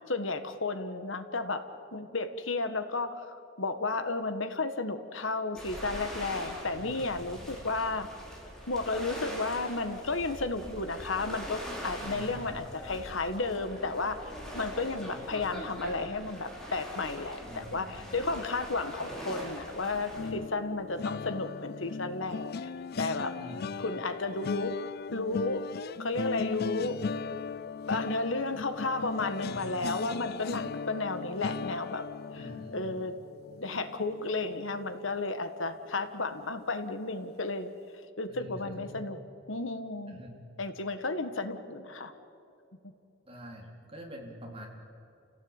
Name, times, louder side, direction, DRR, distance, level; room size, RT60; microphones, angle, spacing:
voice 1, 0.0-1.6 1.9-8.1 8.7-22.7 23.0-23.3 23.8-24.7 25.1-25.6 26.0-27.0 27.9-32.0 32.3-33.1 33.5-37.7 38.2-39.2 39.5-40.2 40.6-42.1, left 3 dB, 70° left, 9 dB, 1.6 m, -33 dB
sound 1, 5.5-20.3, equal, 5° left, 4.6 m, -42 dB
voice 2, 6.6-7.6 12.0-12.6 15.1-15.3 17.4-18.3 23.4-23.8 29.4-29.8 32.3-32.8 38.3-39.0 40.1-40.4 43.2-44.7, equal, 30° right, 0 dB, 3.7 m, -46 dB
sound 2, 20.1-35.3 35.7-35.9 36.2-36.4, left 5 dB, 50° left, 0.5 m, -38 dB
29.5 x 16.5 x 9.0 m, 2.7 s
head